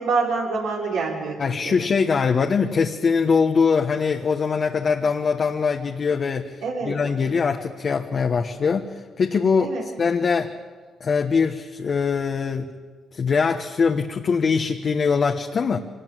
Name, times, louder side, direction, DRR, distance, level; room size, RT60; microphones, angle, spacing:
voice 1, 0.0-1.7 6.6-7.0 9.6-9.9, right 4 dB, 85° right, -3 dB, 5.9 m, -26 dB
voice 2, 1.4-10.5 11.0-12.7 13.1-15.8, left 5 dB, 45° left, 4 dB, 1.2 m, -22 dB
24.0 x 19.0 x 7.8 m, 1.5 s
cardioid pair, 90°, 0 cm